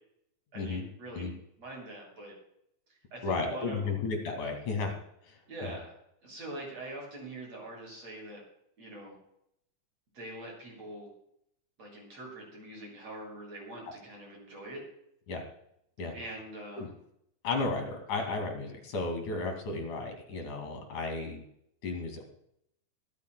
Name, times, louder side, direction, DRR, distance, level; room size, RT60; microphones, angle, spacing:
voice 1, 0.5-2.3 2.9-3.9 5.5-5.9 6.2-8.4 8.8-9.2 10.1-11.1 11.8-14.8 16.1-16.9, right 1 dB, 50° right, -2 dB, 8.3 m, -43 dB
voice 2, 3.2-5.0 5.3-5.8 15.3-15.4 16.0-16.1 16.8-16.9 17.4-21.4 21.8-22.2, left 3 dB, 70° left, 4 dB, 3.9 m, -34 dB
24.0 x 13.5 x 2.3 m, 0.74 s
omnidirectional pair, 3.7 m